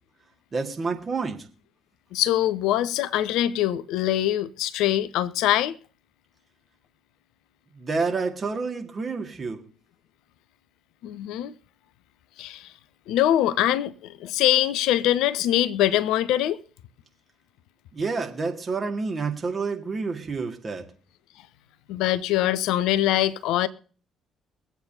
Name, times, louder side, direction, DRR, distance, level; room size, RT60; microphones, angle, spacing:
voice 1, 0.5-1.5 7.8-9.6 17.9-20.8, right 4 dB, 35° right, 2.1 m, -29 dB
voice 2, 2.1-5.8 11.0-11.5 12.4-12.7 13.1-16.6 21.9-23.7, left 13 dB, 60° left, 0.6 m, -23 dB
23.0 x 8.2 x 2.8 m
figure-of-eight pair, 45°, 0 cm